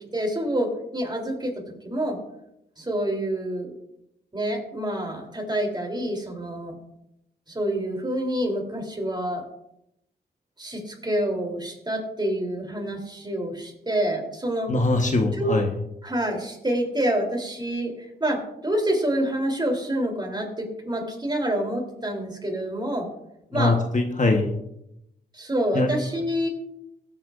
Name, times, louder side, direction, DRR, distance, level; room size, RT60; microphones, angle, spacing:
voice 1, 0.1-1.5 1.8-2.2 2.8-3.7 4.3-6.8 7.5-9.4 10.6-14.7 15.4-15.6 16.0-23.1 23.5-23.8 25.3-26.5, right 1 dB, 25° right, 1 dB, 3.5 m, -27 dB
voice 2, 14.7-15.7 23.5-24.5 25.7-25.9, left 2 dB, 45° left, 4 dB, 1.4 m, -22 dB
15.5 x 8.8 x 2.6 m, 0.82 s
cardioid pair, 55°, 18 cm